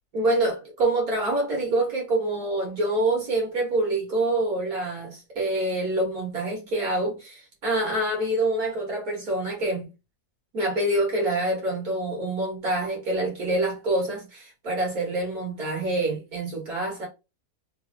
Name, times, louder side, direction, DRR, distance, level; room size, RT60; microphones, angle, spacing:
voice 1, 0.1-9.9 10.5-17.1, right 2 dB, 65° right, 2.0 m, -26 dB
3.4 x 3.4 x 2.7 m
omnidirectional pair, 1.6 m